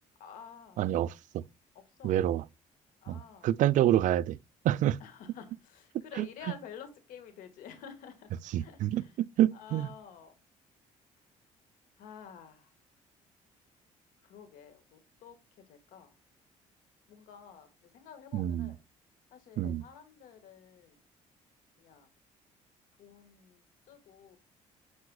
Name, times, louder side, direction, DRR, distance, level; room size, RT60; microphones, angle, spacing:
voice 1, 0.2-0.8 1.8-2.3 3.0-3.5 5.0-9.2 9.5-10.4 12.0-12.7 14.2-16.2 17.1-18.8 19.3-21.0 21.8-22.1 23.0-24.4, left 7 dB, 80° left, 1.6 m, -50 dB
voice 2, 0.8-1.4 2.0-2.4 3.1-4.4 4.6-5.0 6.2-6.3 8.5-9.0 9.4-9.9 18.3-18.7 19.6-19.8, right 12 dB, 65° right, 0.4 m, -27 dB
9.4 x 4.3 x 2.3 m
cardioid pair, 85°, 14 cm